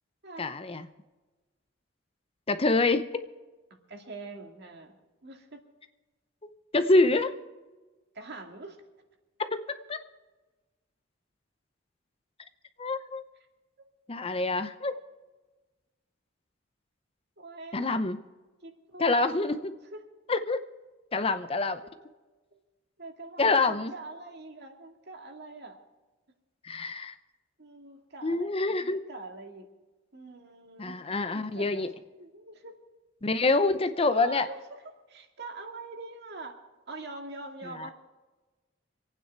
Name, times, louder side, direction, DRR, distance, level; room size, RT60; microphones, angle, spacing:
voice 1, 0.4-0.9 2.5-3.1 6.4-7.4 9.5-9.6 9.9-10.0 12.8-13.2 14.1-14.9 17.7-18.2 19.0-19.7 20.3-20.6 21.1-21.8 23.4-23.9 26.6-27.1 28.2-29.0 30.8-31.9 33.2-34.5 37.8-37.9, left 3 dB, 30° left, 10 dB, 0.7 m, -26 dB
voice 2, 3.7-5.0 5.2-5.6 8.1-8.8 13.8-13.9 17.4-17.9 18.6-19.3 19.9-20.1 21.8-22.0 22.5-22.6 23.0-25.8 27.6-29.7 30.1-31.0 31.3-31.9 32.2-32.8 33.4-33.6 34.0-36.6 36.9-37.9, right 3 dB, 55° right, 4 dB, 2.1 m, -44 dB
26.5 x 9.3 x 4.5 m, 1.2 s
head